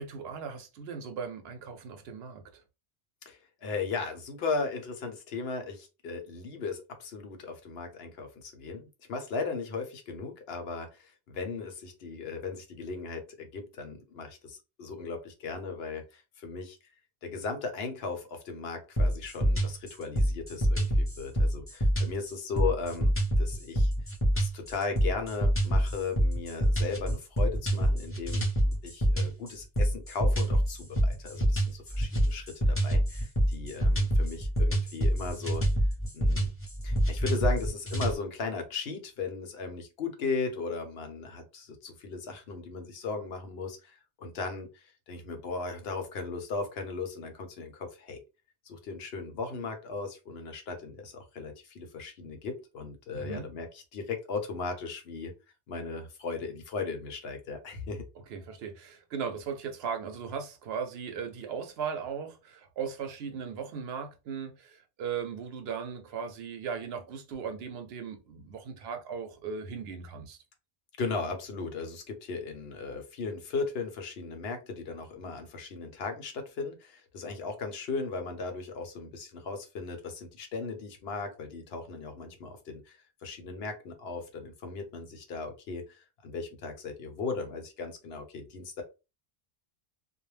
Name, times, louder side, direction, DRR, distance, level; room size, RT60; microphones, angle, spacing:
voice 1, 0.0-2.6 53.1-53.5 58.3-70.4, right 6 dB, 75° right, 0.8 m, -37 dB
voice 2, 3.3-16.8 17.2-23.9 24.3-35.6 36.1-36.5 36.8-48.2 48.6-55.3 55.7-58.0 71.0-88.8, left 4 dB, 75° left, 0.9 m, -37 dB
sound 1, 19.0-38.2, right 1 dB, 15° left, 0.7 m, -26 dB
2.4 x 2.1 x 3.1 m
omnidirectional pair, 1.1 m